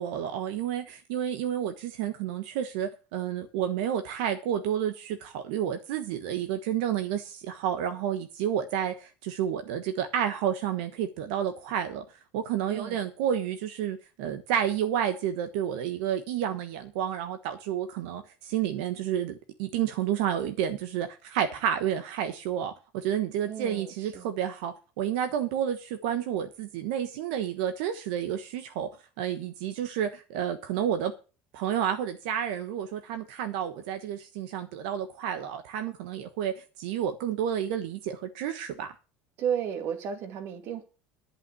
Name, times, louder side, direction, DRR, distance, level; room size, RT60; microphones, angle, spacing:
voice 1, 0.0-12.0 12.3-28.9 29.2-31.1 31.5-38.9, right 9 dB, 85° right, 1.2 m, -30 dB
voice 2, 12.7-13.1 23.5-24.3 39.4-40.8, right 8 dB, 55° right, 2.2 m, -33 dB
11.0 x 5.9 x 8.3 m
cardioid pair, 140°, 5 cm